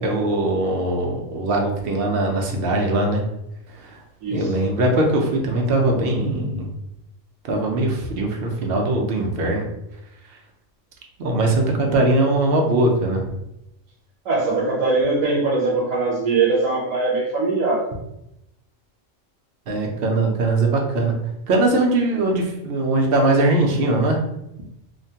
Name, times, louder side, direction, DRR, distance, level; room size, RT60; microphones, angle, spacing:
voice 1, 0.0-3.2 3.7-4.0 4.3-6.7 7.4-9.6 10.3-10.4 11.2-13.2 19.7-21.1 21.5-24.2, right 2 dB, 60° right, 1 dB, 0.7 m, -21 dB
voice 2, 14.2-17.9, right 3 dB, 90° right, -4 dB, 1.1 m, -21 dB
3.1 x 2.1 x 2.7 m, 0.86 s
omnidirectional pair, 1.3 m